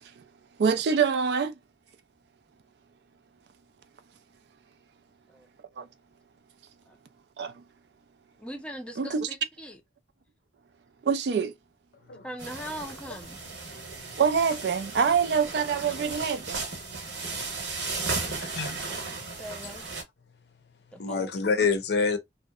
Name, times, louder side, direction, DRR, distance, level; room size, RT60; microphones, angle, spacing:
voice 1, 0.6-1.6 5.8-5.9 7.4-7.6 9.0-9.3 11.0-11.5 14.2-16.7 18.6-18.8, right 6 dB, 65° right, 0.4 m, -25 dB
voice 2, 8.4-9.8 12.2-13.5 18.1-18.5 19.3-19.8 20.9-21.3, equal, 5° left, 0.5 m, -41 dB
sound 1, 12.4-20.0, right 3 dB, 80° right, 1.0 m, -35 dB
voice 3, 18.4-18.8 21.0-22.2, left 4 dB, 65° left, 0.5 m, -26 dB
2.8 x 2.0 x 2.3 m
head